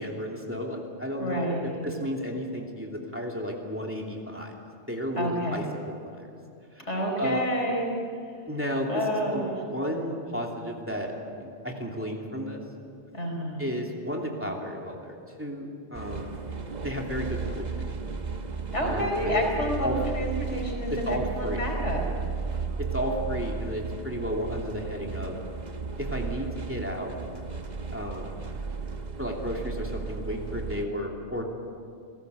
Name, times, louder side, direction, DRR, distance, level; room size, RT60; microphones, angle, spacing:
voice 1, 0.0-4.6 4.9-6.3 6.7-7.4 8.5-9.0 9.3-11.1 11.4-12.6 13.6-16.4 16.8-17.9 18.8-19.4 19.8-20.0 20.9-21.6 22.8-25.4 26.0-27.1 27.9-28.3 29.2-31.4, equal, 10° right, -1 dB, 2.9 m, -33 dB
voice 2, 1.2-1.9 5.2-5.7 6.8-7.9 8.9-9.5 13.1-13.7 18.7-22.0, equal, 80° left, 1 dB, 5.1 m, -29 dB
sound 1, 15.9-30.9, right 4 dB, 40° right, 1.3 m, -34 dB
29.0 x 17.5 x 8.3 m, 2.4 s
omnidirectional pair, 1.2 m